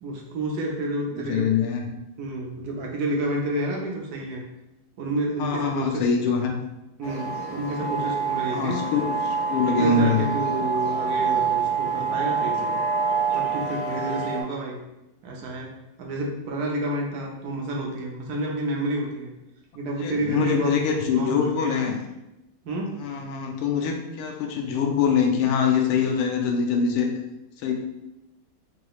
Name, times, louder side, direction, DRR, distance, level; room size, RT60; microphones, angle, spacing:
voice 1, 0.0-1.5 2.2-4.4 5.0-6.1 7.0-8.8 9.8-12.8 13.3-14.8 15.2-15.7 16.0-19.3 19.7-21.8 22.6-22.9, right 1 dB, 75° right, -1 dB, 0.9 m, -29 dB
voice 2, 1.2-1.9 5.4-6.6 8.5-10.3 20.0-22.0 23.0-27.1 27.6-27.7, left 6 dB, 85° left, 2 dB, 1.5 m, -24 dB
sound 1, 7.0-14.4, right 5 dB, 60° left, 1.2 m, -26 dB
4.8 x 3.0 x 2.3 m, 0.94 s
omnidirectional pair, 2.4 m